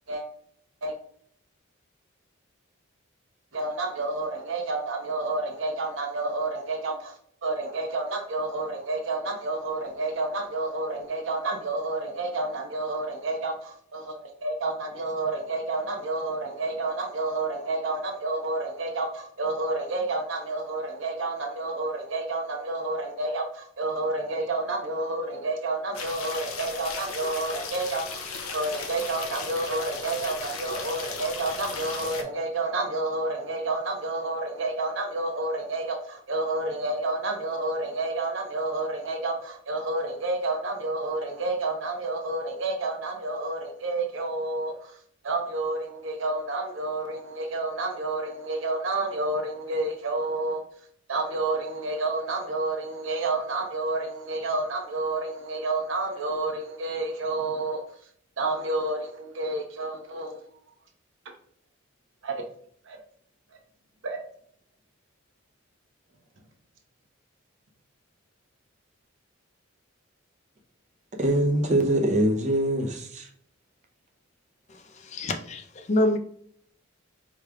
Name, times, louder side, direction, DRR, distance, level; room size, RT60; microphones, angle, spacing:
voice 1, 3.5-7.1 7.4-28.2 28.5-45.0 45.2-50.6 51.1-57.8 58.4-60.4 62.2-62.3 62.8-63.0 64.0-64.2, right 2 dB, 65° right, 0.7 m, -30 dB
sound 1, 25.9-32.2, left 5 dB, 90° left, 0.7 m, -36 dB
voice 2, 71.2-73.3, right 1 dB, 35° right, 0.7 m, -23 dB
voice 3, 74.7-76.2, left 1 dB, 35° left, 0.4 m, -27 dB
4.9 x 3.1 x 2.3 m
head